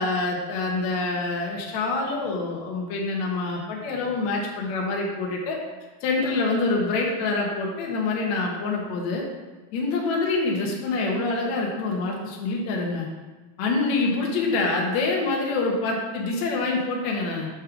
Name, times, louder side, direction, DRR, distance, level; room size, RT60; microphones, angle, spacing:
voice 1, 0.0-5.6 6.0-9.2 9.7-13.1 13.6-17.5, left 3 dB, 85° left, -1 dB, 1.6 m, -26 dB
7.3 x 3.6 x 5.9 m, 1.2 s
omnidirectional pair, 4.8 m